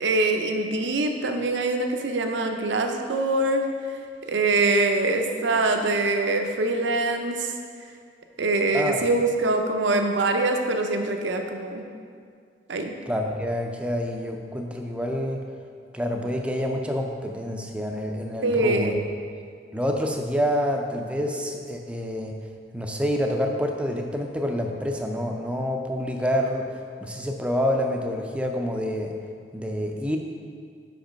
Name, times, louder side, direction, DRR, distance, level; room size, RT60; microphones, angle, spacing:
voice 1, 0.0-3.6 4.3-7.5 8.4-11.8 12.7-12.9 18.4-19.0, right 2 dB, 80° right, 4 dB, 0.6 m, -24 dB
voice 2, 8.7-9.1 13.1-15.4 15.9-19.1 19.7-22.4 22.7-26.7 27.0-29.1 29.5-30.2, equal, 5° right, 2 dB, 0.4 m, -27 dB
5.3 x 5.1 x 5.1 m, 2.2 s
head